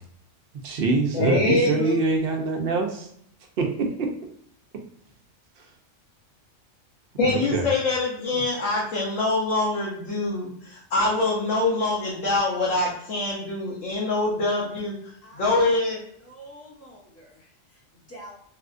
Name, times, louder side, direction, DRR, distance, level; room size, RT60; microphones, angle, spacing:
voice 1, 0.6-3.1 3.6-4.1 7.2-7.7 8.3-8.4, right 3 dB, 60° right, 2 dB, 0.7 m, -24 dB
voice 2, 1.1-2.0 7.2-15.0 15.3-16.0, left 2 dB, 80° left, -5 dB, 1.2 m, -24 dB
voice 3, 15.2-15.8 16.2-18.3, right 1 dB, 15° left, -6 dB, 0.7 m, -47 dB
3.4 x 2.3 x 2.4 m, 0.69 s
omnidirectional pair, 1.3 m